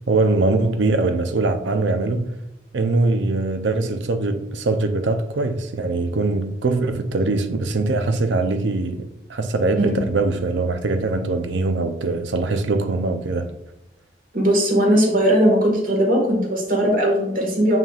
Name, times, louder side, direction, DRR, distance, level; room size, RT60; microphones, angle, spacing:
voice 1, 0.1-2.4 2.7-13.5, right 3 dB, 85° right, 0.6 m, -22 dB
voice 2, 14.3-17.8, equal, 50° right, 1.7 m, -18 dB
7.2 x 5.7 x 2.4 m
head